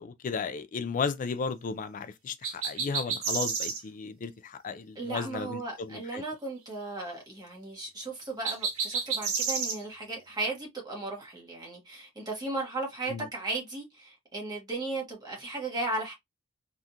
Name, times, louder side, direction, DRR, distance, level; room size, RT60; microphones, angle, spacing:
voice 1, 0.0-6.2 13.1-13.3, left 5 dB, 35° left, 0.3 m, -34 dB
sound 1, 2.4-3.8 8.4-9.8, right 5 dB, 70° right, 0.9 m, -30 dB
voice 2, 4.9-16.1, right 2 dB, 20° right, 1.3 m, -36 dB
3.5 x 2.4 x 2.7 m
head